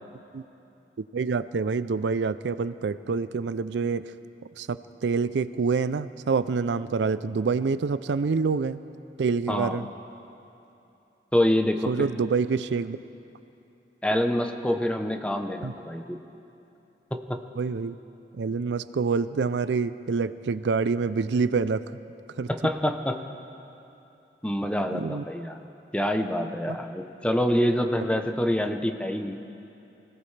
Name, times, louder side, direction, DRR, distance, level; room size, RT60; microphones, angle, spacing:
voice 1, 1.1-4.1 4.6-8.8 9.2-9.9 11.9-13.0 15.6-15.7 17.6-18.0 18.4-21.8 22.4-22.5 24.9-25.2, right 4 dB, 90° right, 14 dB, 0.4 m, -26 dB
voice 2, 9.5-9.9 11.3-12.1 14.0-16.2 17.1-17.4 22.5-23.2 24.4-25.6 25.9-29.4, left 1 dB, 5° left, 5 dB, 0.7 m, -26 dB
25.0 x 17.0 x 3.3 m, 2.9 s
head